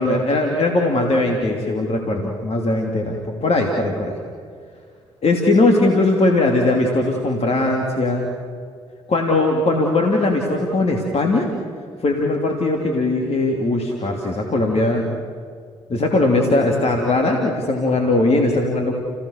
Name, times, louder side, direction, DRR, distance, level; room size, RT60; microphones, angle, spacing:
voice 1, 0.0-4.1 5.2-8.3 9.1-11.5 12.0-15.1 15.9-19.0, left 2 dB, 50° left, 1 dB, 3.1 m, -19 dB
30.0 x 17.0 x 6.7 m, 2.1 s
hypercardioid pair, 50°, 14 cm